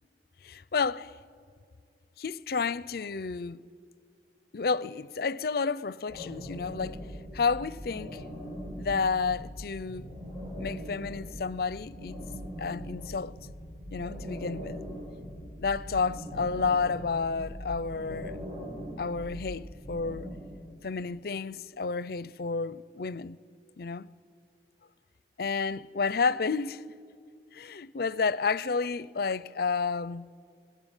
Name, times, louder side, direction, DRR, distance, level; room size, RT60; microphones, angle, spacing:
voice 1, 0.4-1.1 2.2-3.6 4.5-7.0 7.3-8.2 8.8-10.1 10.6-12.2 12.6-13.3 13.9-14.8 15.6-18.4 19.0-20.3 20.8-23.4 23.8-24.1 25.4-26.8 27.5-30.3, left 5 dB, 55° left, 0.5 m, -31 dB
sound 1, 6.1-20.3, equal, 30° right, 7.7 m, -41 dB
24.5 x 21.5 x 9.0 m
head